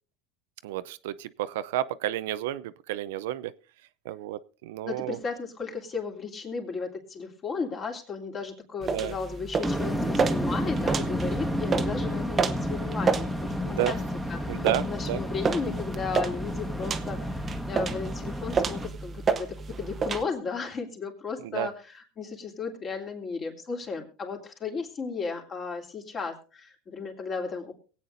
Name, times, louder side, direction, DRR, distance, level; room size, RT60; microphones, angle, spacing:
voice 1, 0.6-3.5 4.1-5.2 8.9-9.1 13.7-13.9 14.5-15.2 21.4-21.7, right 13 dB, 85° right, 14 dB, 0.5 m, -31 dB
voice 2, 4.8-14.0 14.3-27.7, left 5 dB, 35° left, 2 dB, 3.0 m, -35 dB
sound 1, 8.8-20.2, right 5 dB, 25° right, 0.8 m, -31 dB
sound 2, 9.6-18.9, equal, 5° left, 1.4 m, -31 dB
23.0 x 8.5 x 2.6 m, 0.37 s
supercardioid pair, 115°, 0 cm